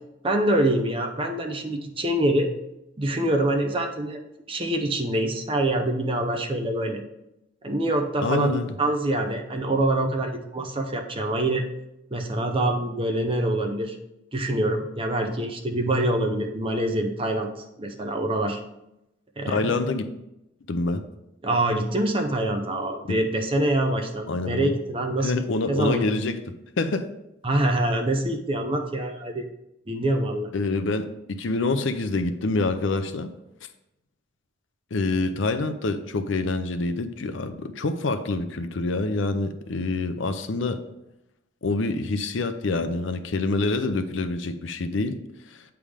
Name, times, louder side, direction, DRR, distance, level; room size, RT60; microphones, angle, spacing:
voice 1, 0.2-2.5 3.0-4.2 4.5-7.0 7.6-11.6 12.1-14.0 14.3-17.5 17.8-18.6 19.4-19.7 21.4-26.1 27.4-29.4 29.9-30.5, right 1 dB, 25° right, 4 dB, 0.6 m, -25 dB
voice 2, 8.2-8.7 19.5-20.1 20.7-21.0 23.1-23.2 24.3-24.7 25.2-27.1 30.5-33.3 34.9-40.8 41.6-45.2 45.5-45.6, left 3 dB, 70° left, 9 dB, 0.5 m, -26 dB
8.7 x 3.5 x 4.9 m, 0.88 s
head